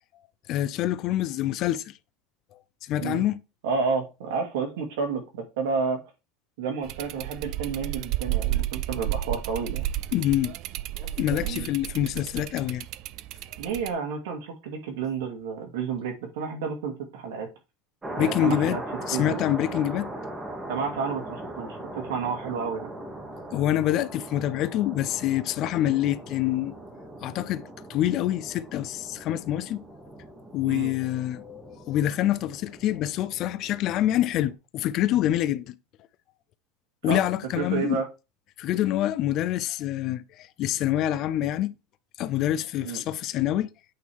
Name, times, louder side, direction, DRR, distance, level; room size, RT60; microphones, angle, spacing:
voice 1, 0.5-1.9 2.8-3.4 10.1-10.5 11.2-12.8 18.2-18.8 19.1-20.1 23.5-26.8 27.2-27.6 27.9-29.8 30.5-35.8 37.0-38.0 38.6-41.7 42.2-43.7, left 12 dB, 40° left, 0.5 m, -26 dB
voice 2, 3.6-6.0 6.6-9.8 11.4-11.7 13.6-17.5 18.1-18.8 19.1-19.4 20.7-22.9 30.6-30.9 37.0-37.2 37.6-38.1 42.8-43.0, right 5 dB, 90° right, 2.5 m, -30 dB
sound 1, 6.8-13.9, right 14 dB, 40° right, 0.3 m, -32 dB
sound 2, 18.0-34.5, right 1 dB, 10° right, 1.2 m, -40 dB
8.4 x 3.7 x 4.5 m
supercardioid pair, 170°, 0 cm